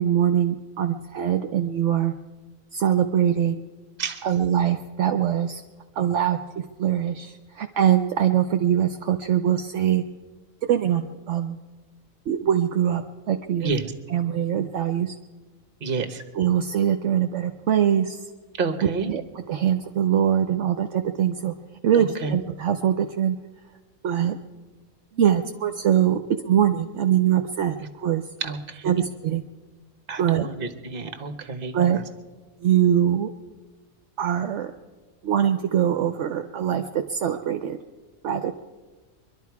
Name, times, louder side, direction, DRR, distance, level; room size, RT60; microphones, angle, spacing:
voice 1, 0.0-2.1 2.7-3.6 4.2-5.6 6.0-6.4 6.8-10.0 10.7-11.6 12.3-13.7 14.1-15.1 16.4-18.2 19.1-19.2 19.5-21.5 21.8-23.4 24.0-24.4 25.1-28.2 28.9-29.4 30.2-30.5 31.7-32.0 32.6-33.3 34.2-34.7 35.2-36.8 37.1-37.8 38.2-38.5, right 10 dB, 70° right, 6 dB, 0.9 m, -22 dB
voice 2, 13.6-13.9 15.8-16.2 18.6-19.1 21.9-22.4 27.8-27.9 28.4-29.0 30.1-32.0, right 4 dB, 45° right, 8 dB, 1.2 m, -30 dB
23.5 x 11.5 x 4.7 m, 1.3 s
omnidirectional pair, 1.4 m